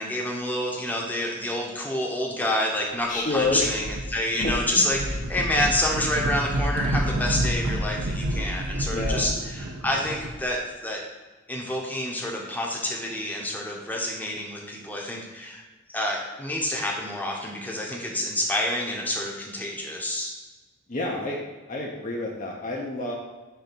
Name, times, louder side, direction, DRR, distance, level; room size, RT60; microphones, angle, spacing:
voice 1, 0.0-5.0 5.3-11.0 11.5-15.6 15.9-20.3, left 1 dB, 10° left, -2 dB, 0.9 m, -28 dB
voice 2, 3.1-3.7 4.4-4.9 8.9-9.3 20.9-21.4 21.7-23.2, left 2 dB, 35° left, -1 dB, 0.7 m, -29 dB
sound 1, 3.4-4.1 4.4-10.4, right 1 dB, 80° right, 0.7 m, -29 dB
5.7 x 3.5 x 5.2 m, 1.2 s
head